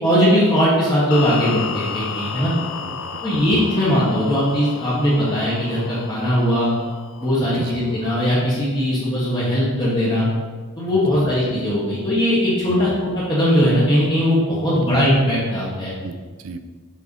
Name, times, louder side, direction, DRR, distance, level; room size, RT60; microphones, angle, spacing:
voice 1, 0.0-2.5 3.2-6.7 7.2-10.3 10.8-15.9, equal, 20° left, -8 dB, 1.3 m, -19 dB
sound 1, 1.1-8.3, left 6 dB, 60° left, 0.4 m, -33 dB
voice 2, 2.8-3.5 7.4-7.8 11.1-11.2 12.7-12.9 14.5-14.6 16.0-16.6, right 4 dB, 65° right, 9 dB, 0.4 m, -35 dB
7.3 x 3.5 x 4.1 m, 1.4 s
head